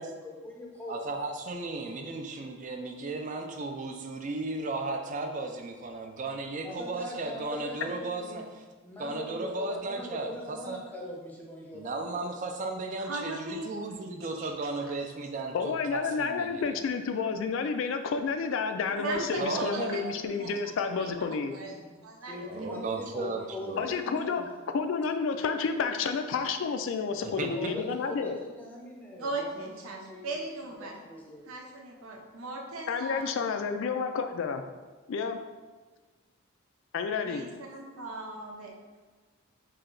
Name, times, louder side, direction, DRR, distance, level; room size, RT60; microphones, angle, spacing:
voice 1, 0.2-0.9 6.6-8.5 8.8-11.9 12.3-12.4 21.6-24.5 27.5-30.3 30.8-31.5, left 1 dB, 10° left, -3 dB, 0.6 m, -42 dB
voice 2, 0.9-8.6 9.0-10.8 11.7-16.5 19.4-20.0 22.5-23.9 27.2-27.8, right 3 dB, 40° right, 4 dB, 0.4 m, -35 dB
voice 3, 13.0-13.7 14.3-14.5 14.8-14.9 19.0-20.5 21.0-21.1 21.5-22.4 22.7-22.8 29.2-31.0 31.5-33.3 37.2-38.7, right 2 dB, 85° right, 1 dB, 0.7 m, -38 dB
voice 4, 15.5-21.5 23.8-24.4 24.7-28.4 32.9-34.6 35.1-35.4 36.9-37.4, left 5 dB, 65° left, 7 dB, 0.3 m, -30 dB
3.2 x 2.8 x 3.8 m, 1.3 s
head